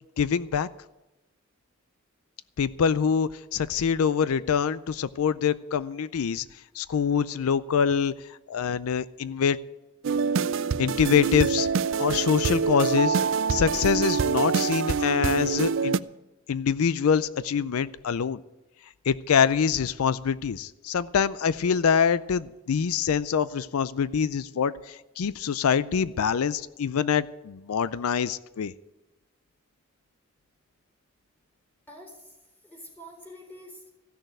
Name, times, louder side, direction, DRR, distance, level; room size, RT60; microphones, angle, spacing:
voice 1, 0.2-0.7 2.6-6.4 6.7-8.1 8.5-9.6 10.8-11.7 12.0-13.2 13.5-16.0 16.5-18.4 19.1-28.7, left 7 dB, 90° left, 17 dB, 0.4 m, -25 dB
sound 1, 10.0-16.0, right 5 dB, 60° right, 0.4 m, -25 dB
voice 2, 31.9-33.9, equal, 10° left, 0 dB, 3.7 m, -47 dB
15.0 x 6.5 x 9.0 m, 1.0 s
head